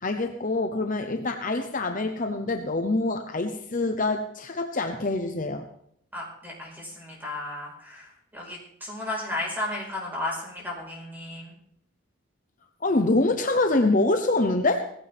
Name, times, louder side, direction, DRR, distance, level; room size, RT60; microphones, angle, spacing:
voice 1, 0.0-5.6 12.8-14.9, left 2 dB, 40° left, 5 dB, 0.9 m, -25 dB
voice 2, 6.1-11.6, left 2 dB, 10° right, -2 dB, 4.9 m, -34 dB
17.5 x 15.5 x 3.6 m, 0.68 s
head